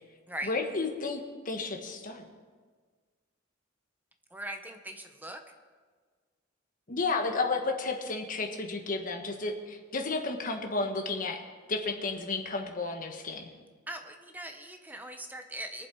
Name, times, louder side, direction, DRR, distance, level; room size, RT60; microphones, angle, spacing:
voice 1, 0.4-2.2 6.9-11.4 11.7-13.5, left 3 dB, 45° left, 3 dB, 1.4 m, -32 dB
voice 2, 4.3-5.4 13.9-15.9, right 1 dB, 10° right, 5 dB, 1.0 m, -40 dB
23.0 x 7.7 x 4.6 m, 1.5 s
head